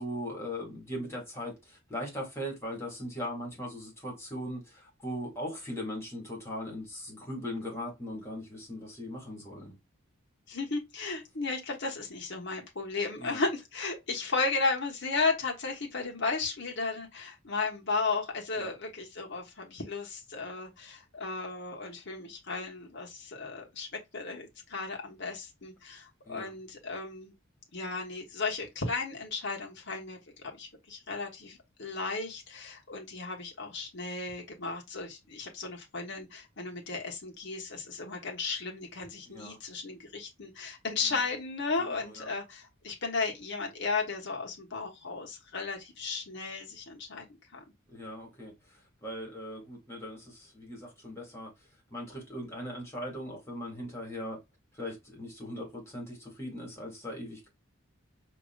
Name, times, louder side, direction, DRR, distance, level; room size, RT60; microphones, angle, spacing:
voice 1, 0.0-9.7 13.2-13.4 18.5-18.7 26.3-26.5 39.3-39.6 41.0-41.2 41.9-42.3 47.9-51.5 51.9-54.4 54.7-57.5, equal, 15° left, 2.1 m, -39 dB
voice 2, 10.5-23.9 24.1-27.3 27.7-47.3 47.5-47.6, left 4 dB, 60° left, 1.3 m, -34 dB
5.2 x 2.9 x 2.3 m
head